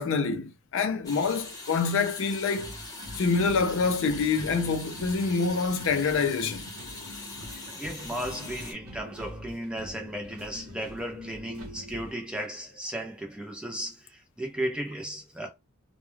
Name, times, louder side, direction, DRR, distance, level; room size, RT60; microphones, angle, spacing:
voice 1, 0.0-2.7 3.1-6.6, left 4 dB, 60° left, 0.4 m, -26 dB
sound 1, 1.0-8.7, left 2 dB, 15° left, 0.9 m, -42 dB
sound 2, 2.6-12.1, equal, 80° right, 0.8 m, -46 dB
sound 3, 3.0-12.0, left 3 dB, 40° right, 0.9 m, -48 dB
voice 2, 7.5-15.5, right 1 dB, 5° right, 0.5 m, -35 dB
2.2 x 2.1 x 3.1 m
head